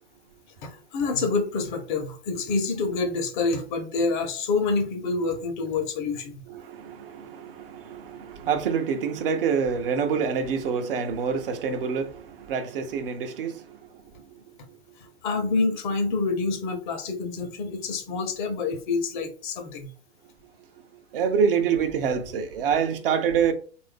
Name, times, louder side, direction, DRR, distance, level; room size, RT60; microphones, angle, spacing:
voice 1, 0.6-6.4 15.2-19.9, left 4 dB, 45° left, 0.9 m, -27 dB
voice 2, 6.5-14.4 14.7-14.8 20.9-23.5, right 6 dB, 55° right, 0.7 m, -27 dB
3.3 x 2.6 x 3.3 m
figure-of-eight pair, 105°, 34 cm